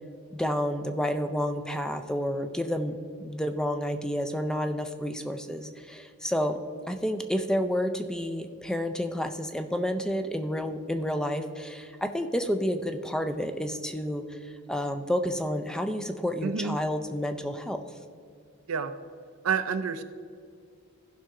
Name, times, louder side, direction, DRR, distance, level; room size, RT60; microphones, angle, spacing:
voice 1, 0.3-6.6 6.9-17.8, equal, 5° left, 6 dB, 0.4 m, -30 dB
voice 2, 16.4-16.8 18.7-18.9 19.4-20.0, right 6 dB, 85° right, 10 dB, 0.6 m, -28 dB
15.0 x 5.6 x 3.7 m, 2.3 s
head